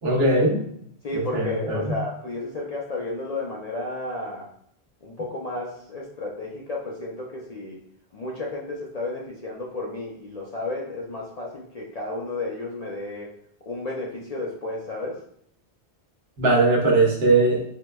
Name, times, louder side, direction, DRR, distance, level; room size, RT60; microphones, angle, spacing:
voice 1, 0.0-0.6 1.1-2.0 16.4-17.6, right 2 dB, 70° right, -2 dB, 1.0 m, -20 dB
voice 2, 1.0-4.5 5.0-7.8 8.1-13.3 13.7-15.2, left 2 dB, 50° left, -3 dB, 0.5 m, -32 dB
4.5 x 2.1 x 2.2 m, 0.66 s
omnidirectional pair, 1.1 m